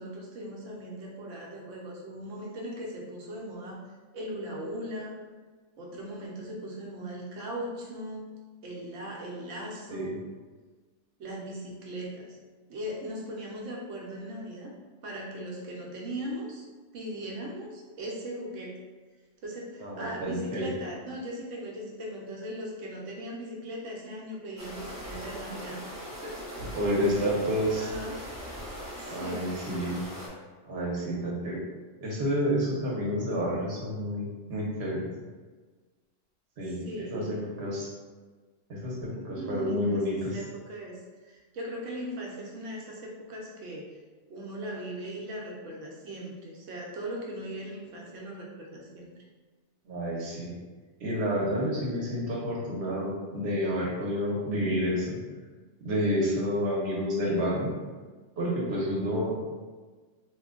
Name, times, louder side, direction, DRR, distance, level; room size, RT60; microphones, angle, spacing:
voice 1, 0.0-3.8 4.1-5.1 5.8-8.3 8.6-10.1 11.2-12.4 12.7-14.7 15.0-16.6 16.9-18.7 19.4-25.8 26.2-26.4 27.7-28.2 29.0-29.5 36.7-37.4 39.4-43.9 44.3-49.1, equal, 85° right, -2 dB, 1.1 m, -39 dB
voice 2, 19.8-20.7 26.8-27.9 29.1-30.0 30.6-31.6 32.0-35.1 36.6-37.9 38.7-40.4 49.9-50.5 51.0-55.2 55.8-57.7 58.4-59.4, equal, 65° right, -3 dB, 1.1 m, -29 dB
sound 1, 24.6-30.3, equal, 15° right, 0.6 m, -40 dB
3.0 x 2.2 x 3.6 m, 1.4 s
omnidirectional pair, 1.2 m